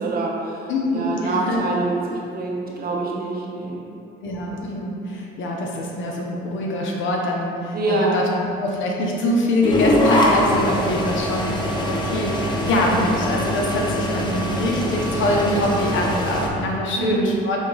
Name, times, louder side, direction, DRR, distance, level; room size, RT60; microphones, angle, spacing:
voice 1, 0.0-3.8 7.7-8.2 17.0-17.4, right 2 dB, 50° right, -3 dB, 0.8 m, -25 dB
voice 2, 0.7-1.6 4.2-8.3 8.6-17.7, left 1 dB, 75° left, -2 dB, 0.8 m, -24 dB
sound 1, 9.6-16.5, left 1 dB, 20° left, 0.6 m, -23 dB
5.1 x 2.4 x 3.9 m, 2.6 s
cardioid pair, 90°, 20 cm